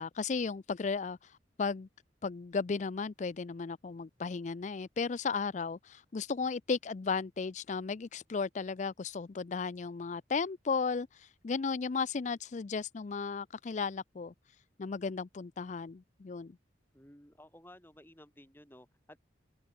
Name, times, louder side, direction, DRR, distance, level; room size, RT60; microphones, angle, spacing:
voice 1, 0.0-1.9 2.2-14.3 14.8-16.5, left 5 dB, 40° left, 0.4 m, -35 dB
voice 2, 16.9-19.2, left 1 dB, 10° left, 7.1 m, -55 dB
head